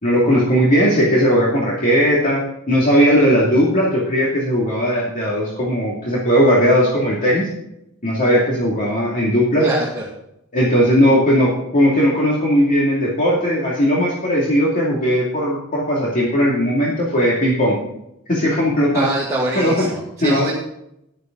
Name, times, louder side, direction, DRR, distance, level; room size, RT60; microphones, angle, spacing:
voice 1, 0.0-7.5 8.0-9.7 10.5-17.8 18.3-19.1 19.5-19.9 20.2-20.5, equal, 40° left, -6 dB, 2.5 m, -17 dB
voice 2, 9.6-10.0 18.9-20.5, right 2 dB, 15° right, -5 dB, 2.1 m, -24 dB
12.5 x 10.5 x 3.9 m, 0.80 s
head